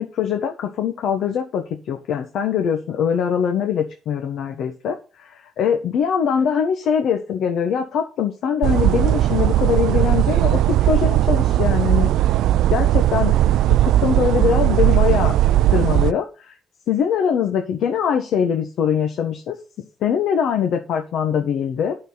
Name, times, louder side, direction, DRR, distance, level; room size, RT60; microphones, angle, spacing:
voice 1, 0.0-12.1 12.7-15.3 15.7-16.5 16.9-19.6 20.0-21.9, left 7 dB, 75° left, 5 dB, 1.4 m, -22 dB
sound 1, 8.6-16.1, right 13 dB, 85° right, 0.3 m, -17 dB
9.2 x 6.6 x 4.1 m, 0.35 s
cardioid pair, 90°, 0 cm